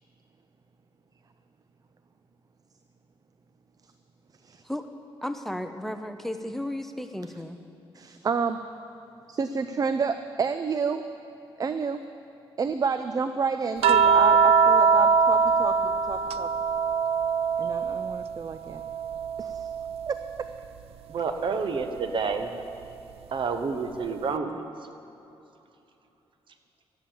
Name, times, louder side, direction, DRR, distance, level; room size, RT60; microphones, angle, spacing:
voice 1, 5.2-7.6, left 1 dB, 5° left, 7 dB, 0.8 m, -34 dB
voice 2, 7.9-8.6 9.3-11.0 11.6-12.0 12.6-16.5 17.6-18.8 19.4-19.7 20.1-20.4, right 5 dB, 40° right, 10 dB, 0.5 m, -30 dB
sound 1, 13.8-18.3 18.7-20.3 21.8-22.0, right 5 dB, 90° right, 0.4 m, -22 dB
voice 3, 21.1-22.5 23.3-24.7, right 5 dB, 55° right, 7 dB, 1.1 m, -29 dB
13.0 x 10.0 x 7.1 m, 3.0 s
cardioid pair, 105°, 10 cm